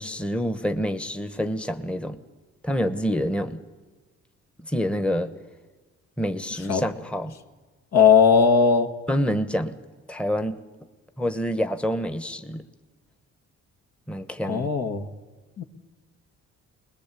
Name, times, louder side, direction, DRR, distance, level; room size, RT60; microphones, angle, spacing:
voice 1, 0.0-2.2 2.6-3.6 4.7-5.3 6.2-7.3 9.1-9.8 10.1-10.6 11.2-12.6 14.1-14.7, equal, 5° left, 10 dB, 1.2 m, -27 dB
voice 2, 7.9-8.9 14.5-15.1 15.6-15.7, left 6 dB, 60° left, 6 dB, 1.9 m, -18 dB
22.0 x 20.0 x 8.4 m, 1.3 s
cardioid pair, 90°, 30 cm